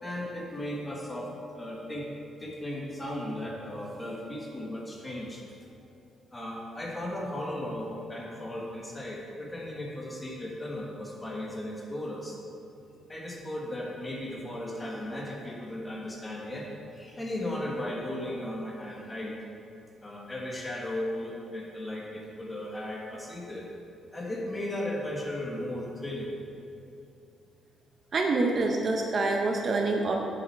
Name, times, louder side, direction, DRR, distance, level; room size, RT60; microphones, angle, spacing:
voice 1, 0.0-2.1 2.4-5.4 6.3-12.4 13.1-19.4 20.0-23.7 24.1-26.4, left 1 dB, 15° left, -2 dB, 1.3 m, -36 dB
voice 2, 28.1-30.1, right 3 dB, 35° right, 2 dB, 0.6 m, -26 dB
7.3 x 7.1 x 4.5 m, 2.7 s
cardioid pair, 145°, 0 cm